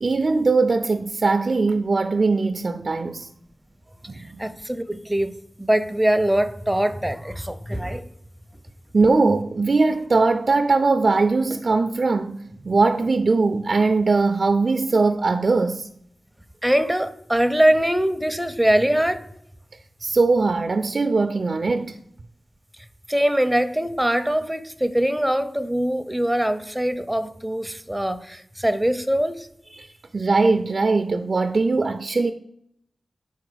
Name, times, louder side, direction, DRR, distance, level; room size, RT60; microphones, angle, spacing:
voice 1, 0.0-3.3 4.1-4.4 8.9-15.9 20.0-22.0 30.1-32.3, right 3 dB, 60° right, 0.4 m, -20 dB
voice 2, 4.4-8.1 16.6-19.2 23.1-29.5, right 1 dB, 5° right, 0.6 m, -22 dB
5.3 x 4.8 x 6.2 m
cardioid pair, 55°, 0 cm